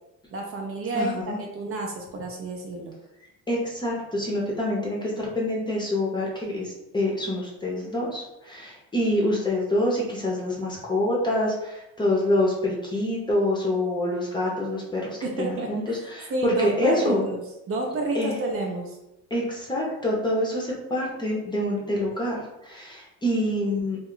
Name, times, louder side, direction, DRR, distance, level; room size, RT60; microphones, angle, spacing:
voice 1, 0.3-3.0 15.2-16.0 16.3-17.4 17.7-19.0, right 2 dB, 40° right, 0 dB, 0.5 m, -29 dB
voice 2, 0.9-1.4 3.5-17.3 18.1-18.3 19.3-24.0, left 1 dB, 15° left, -3 dB, 0.7 m, -26 dB
2.3 x 2.1 x 3.7 m, 0.92 s
cardioid pair, 115°, 33 cm